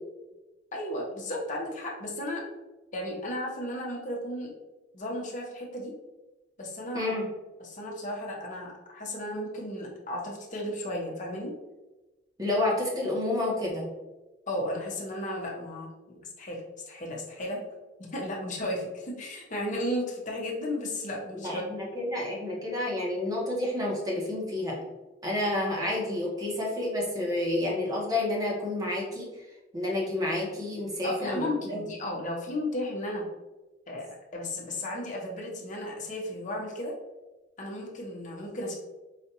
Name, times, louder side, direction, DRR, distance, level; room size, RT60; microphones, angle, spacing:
voice 1, 0.7-2.4 2.9-4.5 4.9-5.9 6.6-7.2 7.6-11.5 14.5-17.6 18.0-21.6 31.0-33.3 33.9-36.9 37.6-38.7, left 1 dB, 45° left, -2 dB, 0.9 m, -34 dB
voice 2, 6.9-7.3 12.4-13.9 21.4-24.8 25.2-29.3 29.7-31.8, left 1 dB, 20° right, -3 dB, 1.0 m, -29 dB
4.9 x 2.4 x 2.8 m, 1.1 s
head